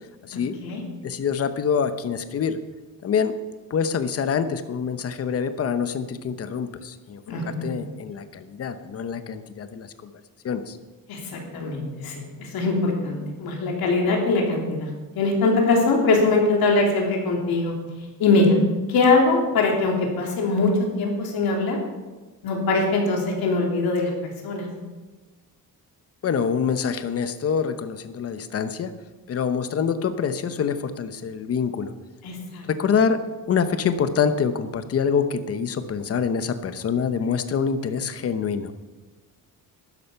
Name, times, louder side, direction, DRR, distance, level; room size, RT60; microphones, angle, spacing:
voice 1, 0.2-0.6 1.0-2.6 3.0-3.3 3.7-10.1 10.4-10.8 26.2-28.9 29.3-31.9 32.7-33.2 33.5-38.7, left 6 dB, 40° left, 11 dB, 0.9 m, -25 dB
voice 2, 7.3-7.8 11.1-17.7 18.2-18.6 18.9-20.7 21.0-21.8 22.4-24.7 32.2-32.6, left 3 dB, 80° left, 0 dB, 3.4 m, -22 dB
12.0 x 10.5 x 5.6 m, 1.2 s
cardioid pair, 155°, 36 cm